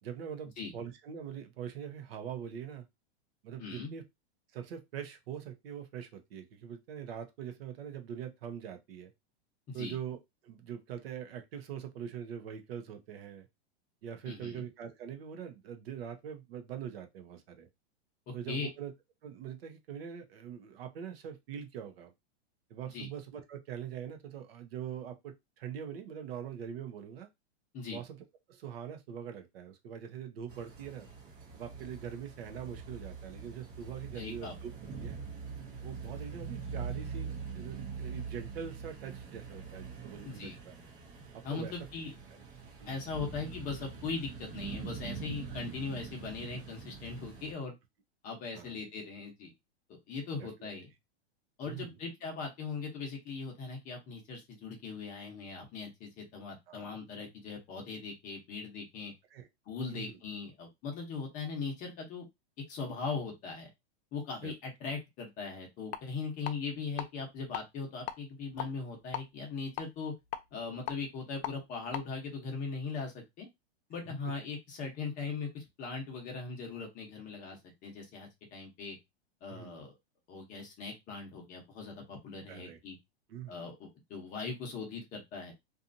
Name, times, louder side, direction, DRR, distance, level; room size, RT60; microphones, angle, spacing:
voice 1, 0.0-2.9 3.4-4.0 4.5-9.1 9.7-13.5 14.0-17.7 18.3-18.9 19.2-22.1 22.7-27.3 27.9-28.2 28.5-31.1 31.5-34.7 35.0-35.2 35.8-40.7 41.3-41.7 42.8-43.0 45.5-45.7 48.5-48.8 50.4-50.7 51.7-51.9 56.7-56.9 59.3-59.5 59.9-60.2 64.4-64.5 79.5-79.8 82.5-82.8 83.3-83.7, right 8 dB, 60° right, 0.8 m, -43 dB
voice 2, 3.6-3.9 9.7-9.9 14.3-14.6 18.3-18.7 22.9-23.1 27.7-28.0 34.1-34.5 40.2-40.6 41.4-42.1 42.9-47.7 48.2-49.5 49.9-50.9 51.6-59.1 59.7-62.2 62.7-63.7 64.1-70.1 70.5-73.5 73.9-79.0 79.4-79.9 80.3-83.0 83.5-85.5, left 4 dB, 25° left, 0.8 m, -40 dB
sound 1, 30.5-47.5, right 5 dB, 35° right, 0.9 m, -44 dB
sound 2, 65.9-66.0 66.5-67.1 67.4-67.6 68.1-69.2 69.8-71.5 71.9-72.0, left 10 dB, 70° left, 0.6 m, -38 dB
2.8 x 2.5 x 2.5 m
supercardioid pair, 155°, 33 cm